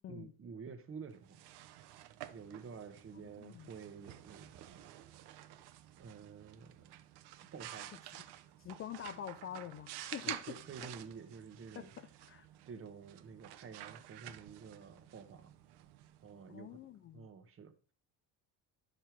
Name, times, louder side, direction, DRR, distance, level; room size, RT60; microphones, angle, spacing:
voice 1, 0.1-1.4 2.3-5.0 6.0-6.9 7.5-8.0 10.2-11.9 12.6-15.5 16.2-16.8 17.1-17.7, right 5 dB, 30° right, 1.2 m, -50 dB
sound 1, 1.1-16.8, right 13 dB, 70° right, 0.9 m, -51 dB
voice 2, 3.1-3.7 8.6-10.5 11.8-12.5 16.5-17.3, left 10 dB, 35° left, 0.4 m, -46 dB
10.5 x 6.5 x 4.6 m
cardioid pair, 140°, 41 cm